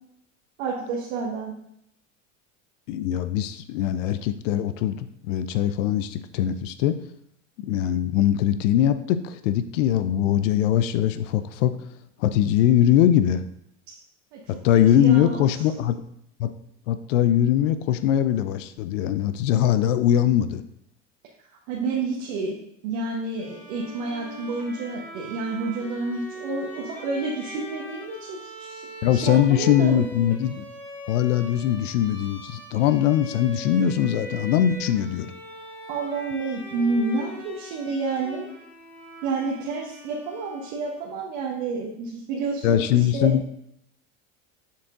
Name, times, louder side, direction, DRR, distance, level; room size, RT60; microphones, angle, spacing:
voice 1, 0.6-1.5 14.3-14.4 14.9-15.5 21.7-22.5 22.8-28.8 29.1-30.1 35.9-38.5 39.2-43.4, right 3 dB, 70° right, -2 dB, 1.3 m, -29 dB
voice 2, 2.9-7.0 7.6-11.8 12.2-13.4 14.5-16.0 16.4-16.6 16.9-20.6 29.0-30.6 31.1-35.3 42.6-43.4, left 11 dB, 80° left, 12 dB, 0.6 m, -21 dB
Bowed string instrument, 23.4-41.2, equal, 5° left, 1.6 m, -41 dB
7.2 x 4.5 x 3.6 m, 0.76 s
supercardioid pair, 100°, 37 cm